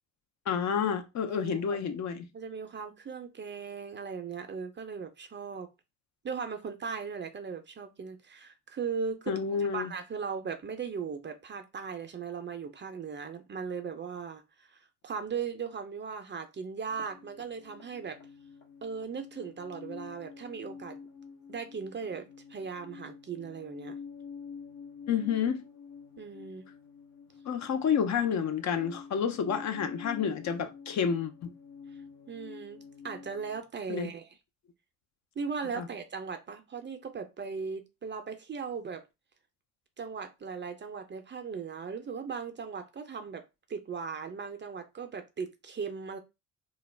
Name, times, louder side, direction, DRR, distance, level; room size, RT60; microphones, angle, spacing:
voice 1, 0.5-2.3 9.3-9.9 25.1-25.6 27.5-31.5 33.9-34.1 35.8-35.9, left 7 dB, 50° left, 0.5 m, -29 dB
voice 2, 1.3-1.8 2.3-5.7 6.2-18.2 18.8-21.0 21.5-24.0 26.2-26.7 32.3-34.3 35.4-39.0 40.0-43.4 43.7-46.2, right 6 dB, 30° right, 0.5 m, -38 dB
sound 1, 16.9-33.6, left 6 dB, 70° left, 1.0 m, -48 dB
2.3 x 2.0 x 3.2 m
hypercardioid pair, 50°, 37 cm